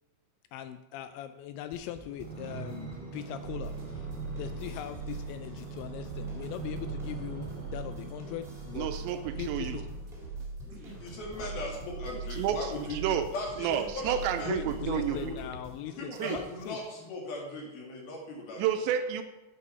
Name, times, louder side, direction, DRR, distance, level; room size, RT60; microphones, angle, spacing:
voice 1, 0.5-4.1 4.3-9.0 9.4-9.9 11.4-11.5 14.4-16.8, left 12 dB, 85° left, 10 dB, 2.7 m, -40 dB
sound 1, 1.7-17.1, equal, ahead, 2.0 m, -52 dB
sound 2, 2.1-10.1 10.7-12.0 12.6-12.7, right 5 dB, 40° right, 2.6 m, -43 dB
sound 3, 3.4-15.6, right 3 dB, 65° right, 2.0 m, -41 dB
voice 2, 8.8-9.8 12.4-13.3 13.6-15.3 16.2-16.4 18.6-19.2, right 9 dB, 80° right, 8 dB, 2.8 m, -30 dB
voice 3, 11.0-13.0 13.3-14.5 14.9-15.4 16.0-18.6, left 2 dB, 60° left, -2 dB, 3.9 m, -38 dB
9.6 x 8.5 x 5.6 m, 1.1 s
omnidirectional pair, 5.4 m